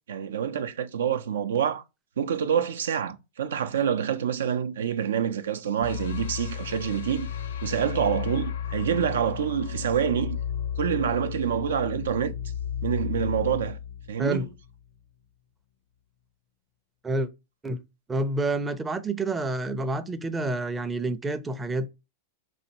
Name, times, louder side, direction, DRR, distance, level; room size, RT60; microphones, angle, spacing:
voice 1, 0.1-1.8 2.2-7.3 7.6-10.4 10.8-12.3 12.8-13.8 14.1-14.5, right 8 dB, 85° right, 0.5 m, -27 dB
sound 1, 5.8-14.9, left 9 dB, 90° left, 0.7 m, -33 dB
voice 2, 18.1-21.9, right 2 dB, 10° right, 0.4 m, -28 dB
4.0 x 2.6 x 2.8 m
hypercardioid pair, 135°, 0 cm